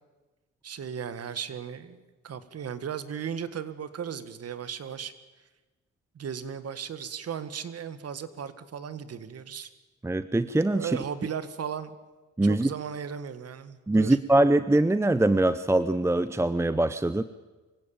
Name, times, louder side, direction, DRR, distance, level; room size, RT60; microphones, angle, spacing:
voice 1, 0.6-5.1 6.1-9.7 10.7-11.9 12.4-14.2, right 8 dB, 55° right, 13 dB, 1.8 m, -36 dB
voice 2, 10.0-11.0 12.4-12.7 13.9-17.2, right 2 dB, 10° right, 13 dB, 0.7 m, -23 dB
24.5 x 16.5 x 8.9 m, 1.2 s
cardioid pair, 90°, 30 cm